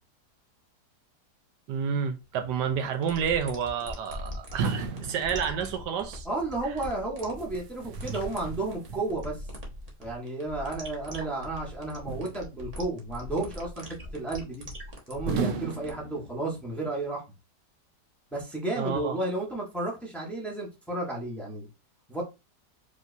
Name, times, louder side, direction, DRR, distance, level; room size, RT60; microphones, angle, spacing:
voice 1, 1.7-6.3 18.8-19.2, right 7 dB, 80° right, 1.3 m, -30 dB
sound 1, 2.9-15.9, equal, 25° right, 0.9 m, -41 dB
sound 2, 4.6-6.1 7.4-9.4 12.1-12.9 15.3-16.7, right 5 dB, 65° right, 0.8 m, -35 dB
voice 2, 6.2-9.5 10.0-14.6 15.1-17.2 18.3-21.7 22.1-22.2, right 2 dB, ahead, 1.2 m, -32 dB
5.1 x 3.0 x 2.7 m
omnidirectional pair, 1.9 m